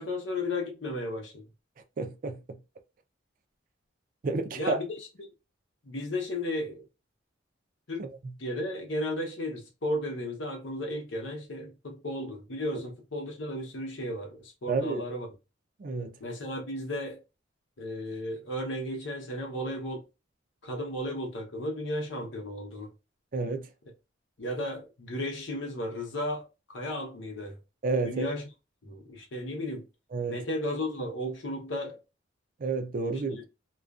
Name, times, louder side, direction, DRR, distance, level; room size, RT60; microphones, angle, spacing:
voice 1, 0.0-1.5 4.6-5.3 5.9-6.8 7.9-8.0 8.4-15.3 16.2-17.2 17.8-20.0 20.6-22.9 24.4-27.6 28.0-28.4 28.8-29.8 30.3-32.0, left 1 dB, 75° left, 0.8 m, -34 dB
voice 2, 2.0-2.4 4.2-4.8 14.7-15.0 15.8-16.1 23.3-23.7 27.8-28.3 30.1-30.4 32.6-33.4, right 3 dB, 45° right, 0.4 m, -30 dB
2.4 x 2.2 x 2.3 m
head